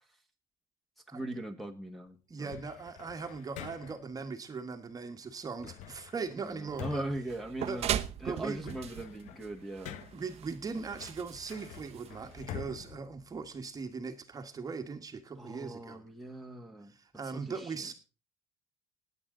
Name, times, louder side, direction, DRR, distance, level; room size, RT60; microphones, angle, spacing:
voice 1, 1.1-2.5 6.4-10.0 15.4-16.9 17.2-17.9, right 1 dB, ahead, 1 dB, 1.6 m, -40 dB
voice 2, 2.3-7.0 7.6-7.8 8.2-8.7 10.1-16.0 16.9-17.9, right 5 dB, 25° right, 6 dB, 1.5 m, -39 dB
sound 1, 2.5-4.1 5.6-8.1 8.4-10.4 10.9-13.9, left 10 dB, 65° left, 1.0 m, -47 dB
sound 2, 7.3-12.6, right 11 dB, 50° right, 0.9 m, -39 dB
19.5 x 8.1 x 3.8 m, 0.33 s
cardioid pair, 115°, 13 cm